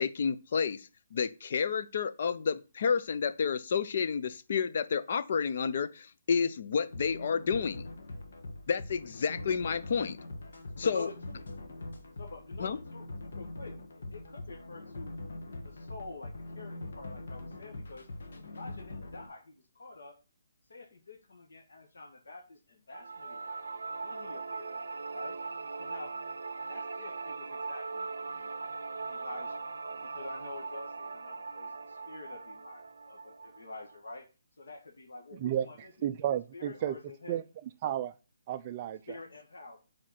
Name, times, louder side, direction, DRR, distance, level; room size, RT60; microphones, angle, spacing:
voice 1, 0.0-7.9 8.7-10.2 10.8-11.1 12.6-12.8, left 6 dB, 40° left, 0.5 m, -30 dB
sound 1, 6.8-19.3, left 2 dB, 60° left, 1.2 m, -43 dB
voice 2, 10.8-11.4 12.1-15.2 15.6-18.1 18.4-20.2 20.7-24.8 25.1-25.4 25.8-26.2 26.6-28.6 29.1-29.7 30.1-34.3 34.6-36.1 36.5-37.4 39.1-39.8, left 3 dB, 85° left, 1.6 m, -48 dB
sound 2, 22.9-34.0, right 4 dB, 90° right, 0.5 m, -40 dB
voice 3, 35.3-35.7 36.0-37.0 37.3-37.4 37.8-38.1 38.5-39.0, right 11 dB, 25° right, 0.4 m, -32 dB
5.1 x 4.5 x 5.7 m
hypercardioid pair, 175°, 0 cm